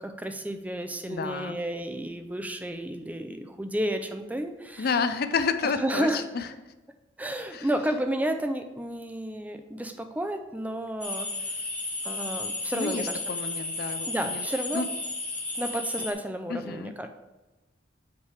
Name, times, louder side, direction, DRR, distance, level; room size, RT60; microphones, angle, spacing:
voice 1, 0.0-4.9 5.6-6.2 7.2-11.3 12.0-13.2 14.1-14.8 15.6-17.1, right 1 dB, 10° right, 7 dB, 0.5 m, -31 dB
voice 2, 1.1-1.6 4.8-6.5 7.5-7.7 12.7-14.5 14.7-14.9 16.5-16.9, left 5 dB, 50° left, 10 dB, 0.4 m, -30 dB
sound 1, 11.0-16.1, left 2 dB, 5° left, 1.0 m, -33 dB
8.1 x 3.4 x 4.8 m, 1.1 s
head